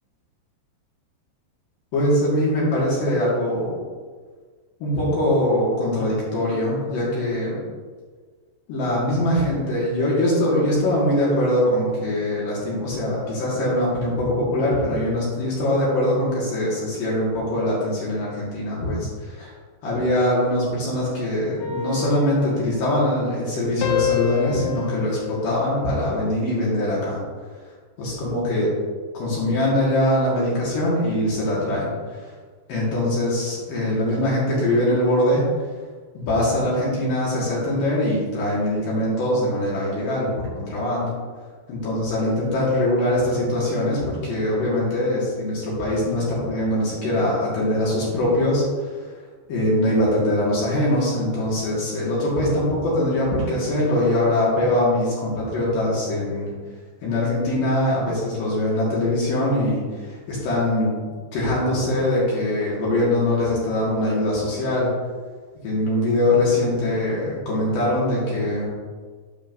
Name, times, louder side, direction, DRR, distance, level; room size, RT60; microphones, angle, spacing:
voice 1, 1.9-3.8 4.8-7.6 8.7-19.5 19.8-27.2 28.0-28.7 29.1-31.9 32.7-35.4 36.1-41.1 41.7-49.0 49.5-56.5 57.0-61.0 61.3-64.9 65.6-68.7, left 1 dB, 55° left, -6 dB, 2.9 m, -22 dB
sound 1, 21.6-23.5 23.8-26.4 26.8-27.2, left 8 dB, 75° left, 2.9 m, -30 dB
9.2 x 6.4 x 2.6 m, 1.5 s
omnidirectional pair, 5.4 m